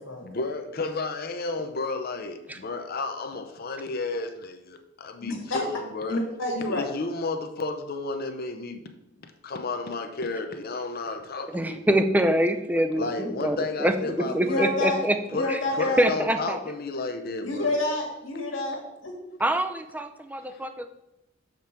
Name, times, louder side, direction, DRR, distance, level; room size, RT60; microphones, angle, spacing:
voice 1, 0.2-6.2 6.7-8.9 9.2-12.0 13.0-14.7 15.3-17.7 20.3-20.6, left 3 dB, 50° left, 7 dB, 0.7 m, -32 dB
voice 2, 5.2-5.6 6.1-6.8 14.2-15.0 15.3-16.0 17.4-19.1, left 2 dB, 75° left, 1 dB, 1.7 m, -28 dB
voice 3, 11.5-15.2 15.5-15.6 16.0-16.6 19.4-20.9, right 1 dB, 10° right, 7 dB, 0.5 m, -25 dB
7.0 x 5.2 x 4.5 m, 0.88 s
head